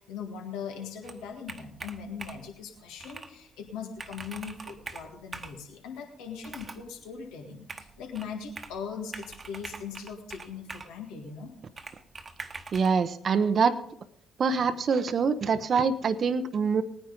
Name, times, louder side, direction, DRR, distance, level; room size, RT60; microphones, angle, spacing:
voice 1, 0.0-11.5 14.5-14.7, left 6 dB, 75° left, 3 dB, 1.8 m, -40 dB
Computer keyboard, 1.0-2.5 3.0-3.3 3.7-3.8 4.0-5.6 6.4-6.9 7.7-8.8 9.1-11.0 11.8-12.9, right 3 dB, 35° right, 1.2 m, -43 dB
voice 2, 12.7-13.8 14.4-16.8, right 5 dB, 50° right, 12 dB, 0.8 m, -25 dB
19.0 x 9.8 x 3.8 m, 0.70 s
hypercardioid pair, 45°, 0 cm